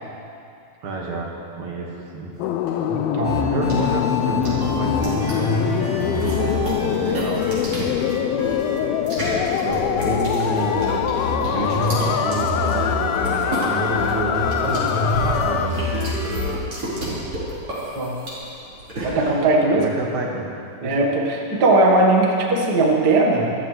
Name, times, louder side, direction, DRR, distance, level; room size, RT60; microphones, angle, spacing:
voice 1, 0.8-2.3 3.4-8.0 9.2-10.9 11.5-16.0 19.8-20.4 20.8-21.0, right 2 dB, 55° right, -2 dB, 2.8 m, -29 dB
sound 1, 2.4-15.7, left 10 dB, 80° left, 2.3 m, -24 dB
sound 2, 2.4-19.4, right 1 dB, 35° right, 5.4 m, -32 dB
voice 2, 2.9-3.4 6.2-6.4 17.9-18.2 19.0-19.8 20.8-23.5, right 2 dB, 70° right, -1 dB, 0.9 m, -19 dB
sound 3, 3.2-7.7 8.0-8.9 9.2-9.5 10.0-17.0, left 2 dB, 50° left, 2.1 m, -27 dB
26.0 x 14.0 x 3.3 m, 2.6 s
omnidirectional pair, 4.6 m